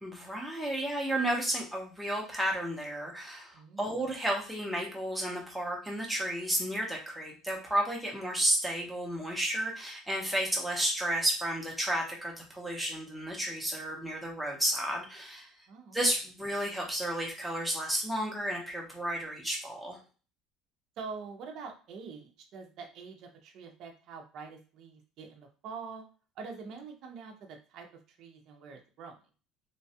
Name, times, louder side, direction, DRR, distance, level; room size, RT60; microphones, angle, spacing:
voice 1, 0.0-15.5 15.9-20.0, right 1 dB, ahead, -2 dB, 0.7 m, -32 dB
voice 2, 3.5-3.9 15.7-16.0 21.0-26.1 26.4-29.2, right 5 dB, 45° right, 3 dB, 0.6 m, -45 dB
3.1 x 2.3 x 2.7 m, 0.36 s
cardioid pair, 180°, 0 cm